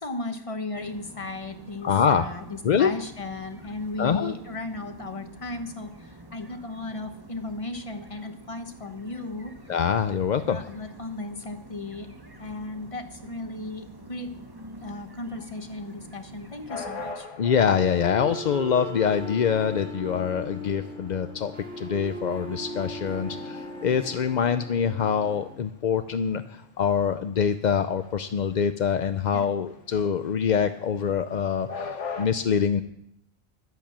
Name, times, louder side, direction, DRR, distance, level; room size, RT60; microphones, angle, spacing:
voice 1, 0.0-9.7 10.5-12.1 12.4-14.3 14.8-17.3 29.3-29.5, left 2 dB, 25° left, 6 dB, 1.2 m, -36 dB
sound 1, 0.7-17.2, right 1 dB, 20° right, 1.3 m, -47 dB
voice 2, 1.8-2.3 2.6-2.9 4.0-4.3 9.7-10.6 17.4-21.5 21.8-32.8, left 7 dB, 55° left, 10 dB, 0.5 m, -25 dB
sound 2, 16.7-32.3, left 4 dB, 70° left, 1.5 m, -42 dB
sound 3, 17.5-25.5, equal, 5° left, 4.5 m, -38 dB
11.5 x 10.5 x 7.3 m, 0.76 s
omnidirectional pair, 1.3 m